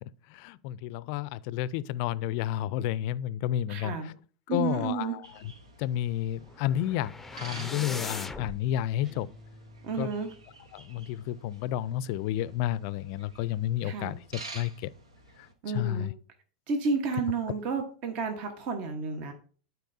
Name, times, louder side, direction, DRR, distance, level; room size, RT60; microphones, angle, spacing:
voice 1, 0.0-4.1 4.5-5.5 5.8-9.3 10.0-10.1 10.7-14.2 14.5-14.9 15.7-16.1, left 12 dB, 55° left, 0.4 m, -31 dB
voice 2, 3.7-4.1 4.5-5.2 9.8-10.3 13.8-14.1 15.6-16.1 16.7-19.3, right 4 dB, 45° right, 1.2 m, -31 dB
sound 1, 5.2-15.5, right 3 dB, 85° right, 1.2 m, -50 dB
sound 2, 6.4-8.6, left 3 dB, 5° left, 0.6 m, -39 dB
sound 3, 9.0-10.7, equal, 20° right, 1.6 m, -53 dB
12.5 x 4.6 x 2.7 m
hypercardioid pair, 95°, 3 cm